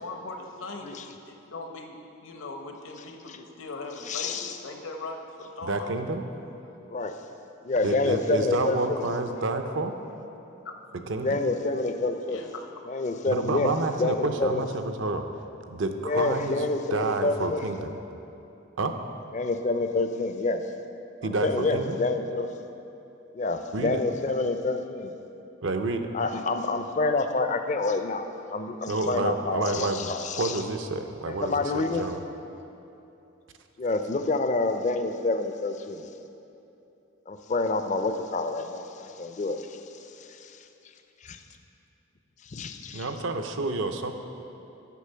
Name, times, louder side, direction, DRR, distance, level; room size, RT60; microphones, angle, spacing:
voice 1, 0.0-0.9 1.2-5.9 10.6-10.7 12.3-12.5, left 3 dB, 70° left, 3 dB, 0.8 m, -39 dB
voice 2, 4.1-4.5 6.9-7.2 7.6-9.1 11.2-12.5 12.9-14.6 16.0-17.6 19.3-20.6 21.4-22.5 23.3-25.1 26.1-30.6 31.3-32.0 33.8-36.1 37.3-39.8 40.3-40.6 41.2-41.4 42.4-43.1, left 3 dB, 35° left, 7 dB, 0.4 m, -28 dB
voice 3, 5.7-6.2 7.8-10.0 11.1-11.4 13.3-15.2 15.7-16.6 16.9-17.9 18.8-19.0 21.2-22.0 23.7-24.0 25.6-26.1 28.9-30.1 30.4-32.2 42.9-44.1, right 2 dB, 65° right, 6 dB, 0.6 m, -29 dB
8.3 x 6.8 x 5.6 m, 2.9 s
head